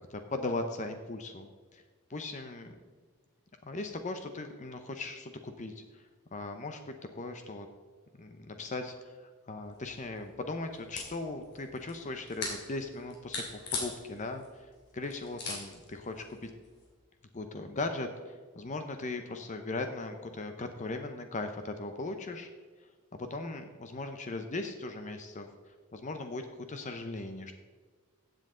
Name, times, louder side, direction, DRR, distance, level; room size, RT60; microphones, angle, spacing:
voice 1, 0.1-1.8 2.1-2.8 3.6-6.1 6.3-7.7 8.2-14.6 14.9-16.5 17.3-22.5 23.1-25.5 25.9-26.4 26.7-27.5, left 2 dB, 35° left, 6 dB, 0.7 m, -38 dB
sound 1, 9.6-16.9, left 3 dB, 50° left, 2.7 m, -43 dB
15.0 x 7.7 x 3.8 m, 1.5 s
head